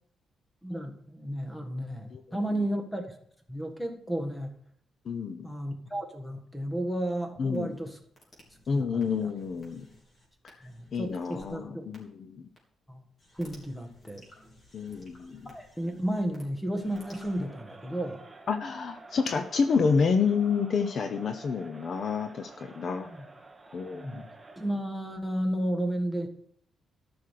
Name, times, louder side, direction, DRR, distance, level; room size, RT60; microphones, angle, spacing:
voice 1, 0.6-3.2 3.5-4.6 5.4-8.0 8.7-9.3 10.6-11.9 12.9-13.0 13.3-14.2 15.4-18.2 23.0-23.3 23.9-24.3 24.6-26.3, right 1 dB, 5° left, 4 dB, 1.6 m, -33 dB
voice 2, 5.1-5.5 7.4-7.7 8.7-9.9 10.4-10.6 10.9-12.5 14.7-15.4 18.5-23.1 23.7-24.2, left 5 dB, 45° left, 8 dB, 0.8 m, -29 dB
sound 1, 7.5-11.6 11.9-12.0 12.6-12.7 13.2-16.4 16.7-17.4, left 1 dB, 30° left, 3.7 m, -56 dB
Crowd, 16.7-24.8, right 3 dB, 15° right, 1.1 m, -50 dB
13.5 x 6.2 x 6.7 m, 0.65 s
cardioid pair, 155°, 0 cm